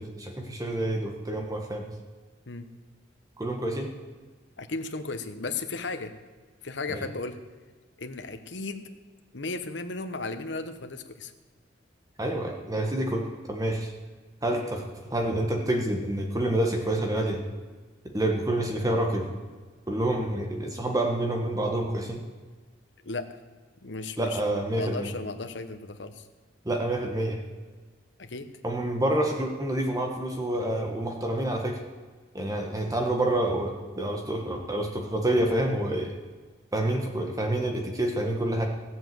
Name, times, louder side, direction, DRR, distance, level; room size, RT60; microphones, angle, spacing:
voice 1, 0.0-1.9 3.4-3.9 6.9-7.0 12.2-13.9 14.4-17.4 18.1-19.3 19.9-22.2 24.2-25.1 26.6-27.4 28.6-31.8 32.3-36.1 36.7-38.7, right 1 dB, 20° right, 2 dB, 1.3 m, -28 dB
voice 2, 4.6-6.1 6.6-7.4 8.0-8.9 9.3-11.3 23.0-23.4 23.8-26.3 28.2-28.5, left 3 dB, 75° left, 8 dB, 1.1 m, -35 dB
15.5 x 7.9 x 7.8 m, 1.4 s
head